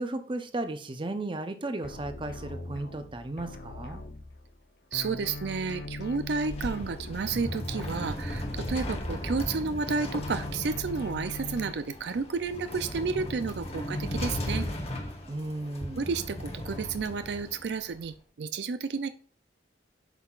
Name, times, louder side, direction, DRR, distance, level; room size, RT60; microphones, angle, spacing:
voice 1, 0.0-4.0 15.3-16.1, right 2 dB, 30° right, 8 dB, 0.7 m, -35 dB
sound 1, 1.8-4.6 4.9-9.6 9.9-11.7, left 2 dB, 60° left, 0.7 m, -41 dB
voice 2, 4.9-14.7 16.0-19.1, right 4 dB, 70° right, 11 dB, 0.4 m, -31 dB
sound 2, 6.2-18.1, left 1 dB, 35° left, 1.1 m, -36 dB
8.2 x 5.7 x 2.4 m, 0.43 s
head